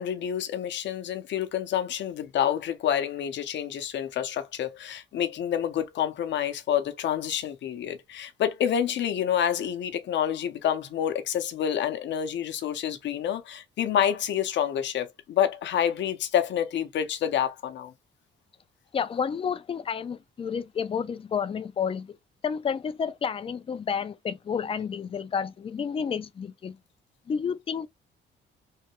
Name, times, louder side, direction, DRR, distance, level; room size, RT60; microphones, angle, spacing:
voice 1, 0.0-17.9, left 9 dB, 65° left, 0.7 m, -28 dB
voice 2, 18.9-22.2 22.4-26.8 27.3-27.9, left 7 dB, 30° left, 0.4 m, -30 dB
3.2 x 2.1 x 2.9 m
cardioid pair, 90°, 20 cm